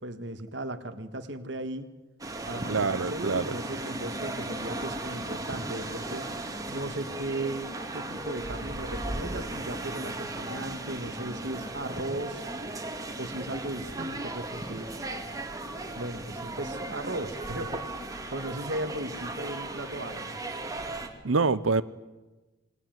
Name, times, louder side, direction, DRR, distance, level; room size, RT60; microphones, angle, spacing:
voice 1, 0.0-1.9 2.5-6.3 6.7-12.4 13.2-14.9 16.0-20.4, right 1 dB, 60° right, 7 dB, 1.6 m, -36 dB
sound 1, 2.2-21.1, right 2 dB, 15° right, 2.4 m, -36 dB
voice 2, 2.7-3.4 21.2-21.8, right 4 dB, 85° right, 14 dB, 0.8 m, -25 dB
27.5 x 21.0 x 9.3 m, 1.1 s
head